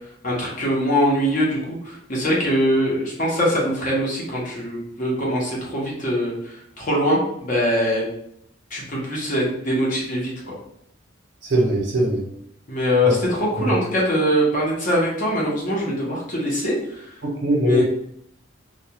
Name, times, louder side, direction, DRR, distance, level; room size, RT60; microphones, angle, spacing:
voice 1, 0.2-8.1 8.7-10.5 12.7-17.1 17.7-17.8, equal, 40° left, -4 dB, 0.8 m, -22 dB
voice 2, 11.4-12.2 13.0-13.1 13.6-13.8 17.2-17.8, equal, 60° right, -1 dB, 0.7 m, -21 dB
2.3 x 2.3 x 2.8 m, 0.73 s
head